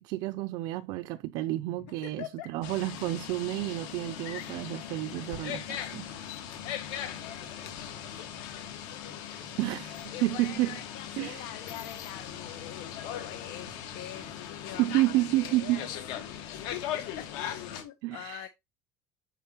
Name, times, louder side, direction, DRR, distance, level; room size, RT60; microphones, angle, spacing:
voice 1, 0.0-6.1 9.6-10.8 11.2-11.5 14.8-15.9 18.0-18.5, right 17 dB, 60° right, 0.4 m, -30 dB
voice 2, 1.8-2.5 7.6-7.7 8.2-8.3 9.4-9.5 10.1-15.9 16.2-18.5, left 12 dB, 90° left, 1.0 m, -44 dB
sound 1, 2.6-17.8, left 9 dB, 65° left, 1.6 m, -39 dB
6.7 x 6.2 x 2.9 m
cardioid pair, 170°, 8 cm